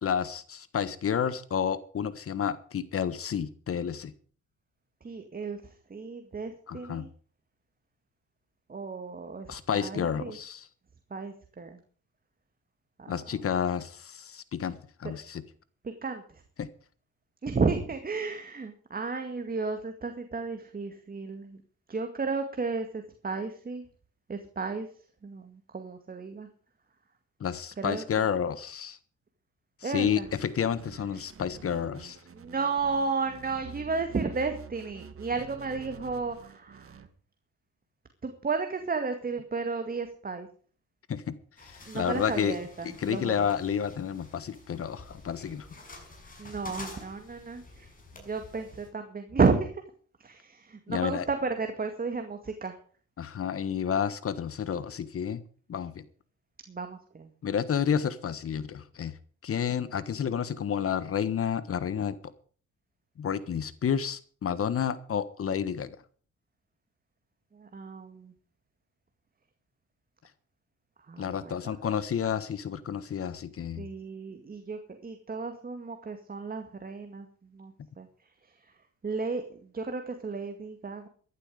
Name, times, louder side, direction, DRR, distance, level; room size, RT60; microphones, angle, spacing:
voice 1, 0.0-4.1 6.7-7.1 9.5-10.7 13.1-15.4 16.6-16.7 27.4-29.0 29.8-32.2 41.1-41.3 41.6-42.6 42.8-45.7 50.9-51.3 53.2-55.4 55.7-56.0 57.4-59.2 59.4-62.2 63.2-66.0 71.2-73.9, left 8 dB, 50° left, 16 dB, 1.3 m, -30 dB
voice 2, 5.0-5.6 5.9-7.1 8.7-10.4 11.1-11.8 13.0-13.2 15.8-16.2 17.4-21.6 21.9-23.8 24.3-24.9 25.2-26.5 27.8-28.0 29.8-30.2 32.3-37.0 38.2-40.5 41.9-43.5 46.4-47.9 48.2-49.7 50.2-52.8 56.7-57.3 67.5-68.3 71.1-71.7 73.8-77.3 77.5-78.1 79.0-81.1, right 4 dB, 30° right, 6 dB, 2.1 m, -33 dB
sound 1, 30.2-37.1, right 7 dB, 45° right, 1.9 m, -48 dB
sound 2, 41.6-48.9, left 2 dB, 25° left, 6.6 m, -48 dB
15.0 x 11.5 x 5.1 m, 0.43 s
cardioid pair, 90°, 30 cm